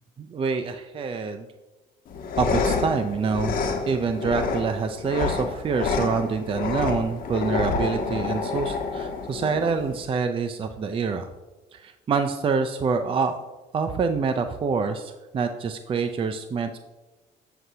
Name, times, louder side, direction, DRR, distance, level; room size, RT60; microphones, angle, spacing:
voice 1, 0.2-1.5 2.4-3.6 3.9-11.3 11.7-13.4 13.7-16.8, right 5 dB, 30° right, 7 dB, 0.5 m, -26 dB
sound 1, 2.1-10.0, left 4 dB, 60° left, 1.3 m, -28 dB
7.7 x 7.7 x 2.8 m, 1.1 s
cardioid pair, 110°, 17 cm